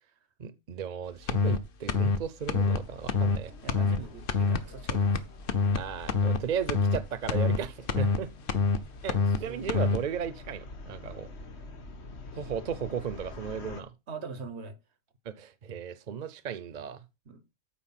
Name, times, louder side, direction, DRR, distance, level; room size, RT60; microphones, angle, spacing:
voice 1, 0.4-3.5 5.7-8.3 9.0-11.3 12.3-13.9 15.3-17.0, right 7 dB, 50° right, 0.7 m, -35 dB
sound 1, 1.3-1.6 1.9-2.2 2.5-2.8 3.1-3.4 3.7-4.0 4.3-4.6 4.9-5.2 5.5-5.8 6.1-6.4 6.7-7.0 7.3-7.6 7.9-8.2 8.5-8.8 9.1-9.4 9.7-10.0, left 4 dB, 60° left, 1.0 m, -25 dB
sound 2, 2.6-13.8, left 2 dB, 90° left, 1.6 m, -47 dB
voice 2, 3.6-5.2 9.1-9.2 9.4-9.7 14.1-14.8 17.3-17.4, right 4 dB, 90° right, 1.4 m, -42 dB
8.5 x 5.0 x 5.7 m
omnidirectional pair, 1.1 m